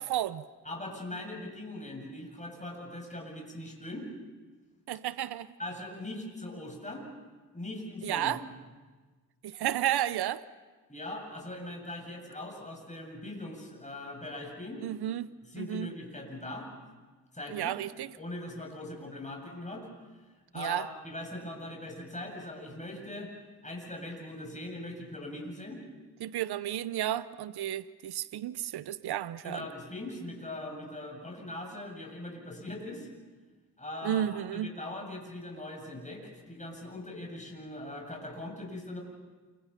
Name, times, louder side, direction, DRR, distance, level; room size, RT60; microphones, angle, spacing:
voice 1, 0.0-0.4 4.9-5.5 8.0-8.4 9.4-10.4 14.8-15.9 17.5-18.1 20.6-20.9 26.2-29.7 34.0-34.8, right 11 dB, 80° right, 0.7 m, -32 dB
voice 2, 0.6-4.1 5.6-7.1 7.5-8.4 10.9-14.8 15.4-16.7 17.3-17.7 18.2-19.9 20.5-23.3 23.6-25.8 29.4-33.1 33.8-39.0, left 1 dB, 20° left, 8.0 m, -41 dB
28.5 x 25.5 x 5.9 m
cardioid pair, 55°, 39 cm